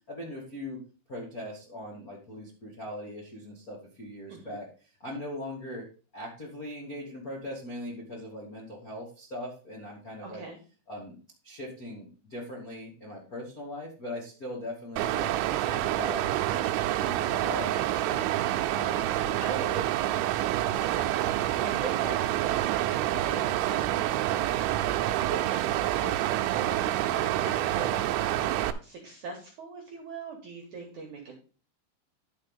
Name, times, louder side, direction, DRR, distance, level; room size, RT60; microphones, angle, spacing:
voice 1, 0.1-0.8 1.1-4.7 5.0-5.8 6.1-10.4 10.9-11.2 11.4-15.3 15.6-16.7 17.0-18.3 18.7-19.5 20.1-20.8 23.7-24.0 27.7-28.0, left 1 dB, 75° left, -4 dB, 0.8 m, -40 dB
voice 2, 10.2-10.6 18.8-19.1 19.4-19.9 20.8-28.1 28.8-31.5, right 4 dB, 65° right, 1 dB, 2.0 m, -41 dB
Water, 15.0-28.7, right 14 dB, 80° right, 2.9 m, -27 dB
11.5 x 4.3 x 5.4 m, 0.36 s
omnidirectional pair, 5.6 m